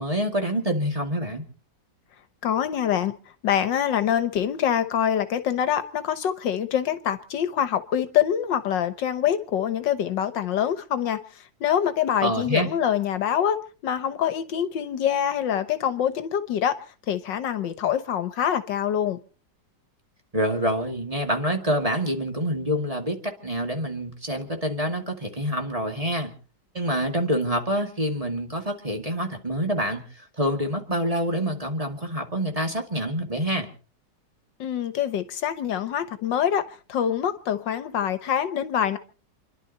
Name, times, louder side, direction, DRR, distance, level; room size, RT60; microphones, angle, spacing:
voice 1, 0.0-1.5 12.2-12.7 20.3-26.3 26.7-30.0 30.4-33.7, equal, 20° right, 2.4 m, -26 dB
voice 2, 2.4-3.2 3.4-13.6 13.8-19.2 34.6-39.0, left 9 dB, 80° left, 1.7 m, -25 dB
29.0 x 11.5 x 4.1 m
omnidirectional pair, 2.0 m